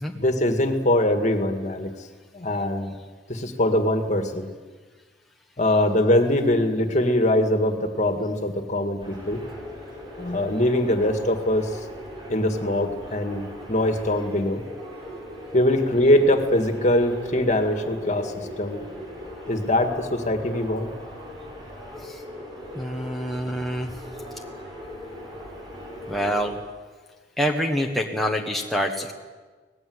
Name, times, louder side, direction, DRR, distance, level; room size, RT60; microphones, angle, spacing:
voice 1, 0.2-1.9 2.3-3.0 3.3-4.5 5.6-9.4 10.2-11.8 12.3-14.6 15.5-18.8 19.5-20.9, left 1 dB, 40° left, 6 dB, 2.0 m, -22 dB
sound 1, 9.0-26.5, equal, 25° right, 7.1 m, -39 dB
voice 2, 22.7-23.9 26.1-26.5 27.4-29.1, equal, ahead, 0 dB, 1.3 m, -26 dB
25.5 x 19.0 x 8.0 m, 1.4 s
head